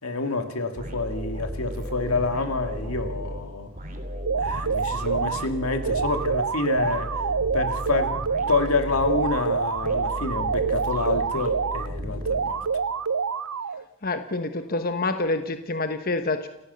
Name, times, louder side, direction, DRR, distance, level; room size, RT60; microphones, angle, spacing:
voice 1, 0.0-3.7 4.4-7.2 7.5-8.2 8.5-12.6, left 3 dB, 80° left, 6 dB, 2.3 m, -27 dB
sound 1, 0.8-12.9, equal, 40° right, 2.8 m, -35 dB
sound 2, 4.3-5.5 5.9-8.7 9.1-11.9 12.3-13.8, right 6 dB, 80° right, 0.7 m, -27 dB
voice 2, 14.0-16.5, left 2 dB, 40° left, 8 dB, 1.1 m, -27 dB
29.5 x 14.5 x 6.9 m, 0.86 s
head